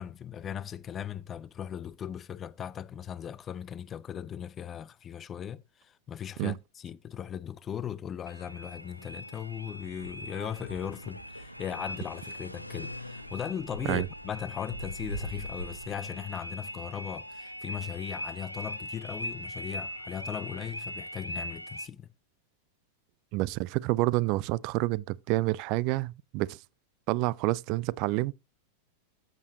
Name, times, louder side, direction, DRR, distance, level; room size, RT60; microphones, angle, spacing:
voice 1, 0.0-22.1, left 9 dB, 25° left, 0.5 m, -38 dB
sound 1, 8.3-21.9, equal, 90° left, 1.0 m, -40 dB
voice 2, 23.3-26.6 27.1-28.3, right 19 dB, 45° right, 0.4 m, -28 dB
13.5 x 6.8 x 2.9 m
figure-of-eight pair, 90°, 0 cm